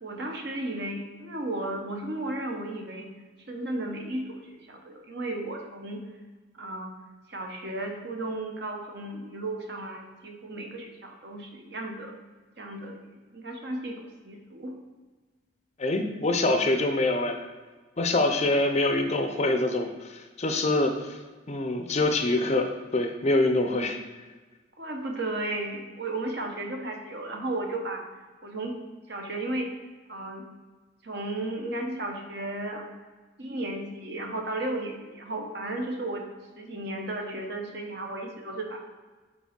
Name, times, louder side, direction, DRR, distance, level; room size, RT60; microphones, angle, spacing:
voice 1, 0.0-3.1 3.5-6.0 6.5-6.9 7.3-12.1 12.6-13.0 13.3-14.8 24.8-28.0 28.4-28.8 29.1-29.7 30.1-30.4 31.0-32.8 33.4-36.2 36.5-38.8, right 2 dB, 55° right, 2 dB, 1.0 m, -34 dB
voice 2, 15.8-17.5 18.0-21.2 21.5-24.0, left 2 dB, 35° left, 5 dB, 0.5 m, -25 dB
5.1 x 4.3 x 5.1 m, 1.3 s
head